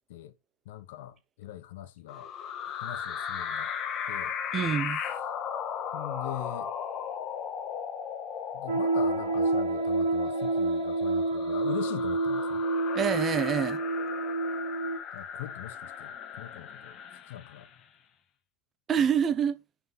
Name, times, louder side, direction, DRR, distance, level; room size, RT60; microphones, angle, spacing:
voice 1, 0.7-2.3 2.6-3.7 4.1-4.3 4.8-5.2 5.9-6.7 8.5-12.6 15.1-17.0 17.2-17.7, left 13 dB, 65° left, 0.9 m, -41 dB
sound 1, 2.1-17.8, left 7 dB, 35° left, 1.4 m, -37 dB
voice 2, 4.5-5.0 12.9-13.8 18.9-19.6, right 8 dB, 25° right, 1.0 m, -26 dB
sound 2, 8.7-15.0, right 3 dB, 75° right, 1.4 m, -28 dB
5.9 x 5.7 x 5.6 m
hypercardioid pair, 120°, 0 cm